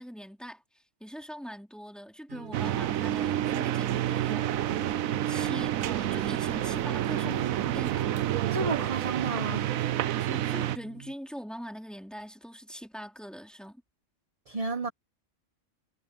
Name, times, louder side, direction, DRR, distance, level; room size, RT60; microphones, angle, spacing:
voice 1, 0.0-4.8 5.3-8.1 10.2-13.8, equal, ahead, 4.4 m, -42 dB
sound 1, 2.3-11.1, right 9 dB, 60° right, 0.7 m, -42 dB
sound 2, 2.5-10.8, right 12 dB, 85° right, 1.1 m, -29 dB
voice 2, 7.2-7.7 8.5-9.7 14.5-14.9, right 3 dB, 30° right, 1.1 m, -32 dB
omnidirectional pair, 1.4 m